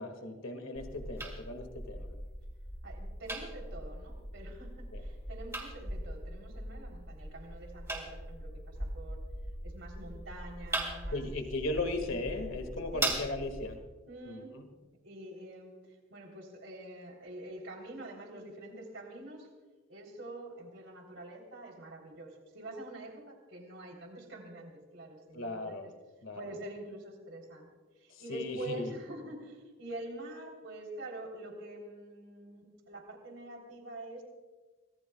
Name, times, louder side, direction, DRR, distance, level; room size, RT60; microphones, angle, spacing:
voice 1, 0.0-2.1 4.9-5.0 11.1-13.8 14.3-14.6 25.3-25.9 26.2-26.4 28.1-28.9, left 2 dB, 90° left, 6 dB, 1.9 m, -37 dB
sound 1, 0.8-13.8, right 1 dB, 15° right, 3.7 m, -40 dB
voice 2, 2.8-9.2 9.6-11.2 12.9-13.1 14.1-14.5 15.0-19.5 19.9-25.9 26.3-27.7 28.0-34.2, right 1 dB, 65° right, 2 dB, 3.5 m, -46 dB
25.5 x 19.0 x 2.3 m, 1.3 s
head